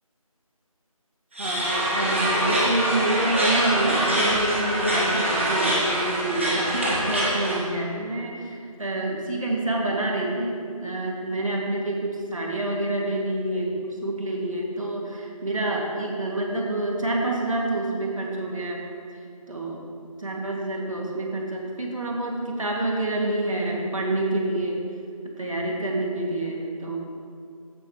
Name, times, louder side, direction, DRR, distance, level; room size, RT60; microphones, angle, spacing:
sound 1, 1.3-7.5, right 1 dB, 20° right, 1.5 m, -24 dB
voice 1, 1.4-18.8 19.5-19.8 20.2-24.8 25.4-27.0, right 2 dB, 65° right, -1 dB, 2.2 m, -27 dB
16.0 x 8.2 x 3.1 m, 2.4 s
figure-of-eight pair, 175°, 19 cm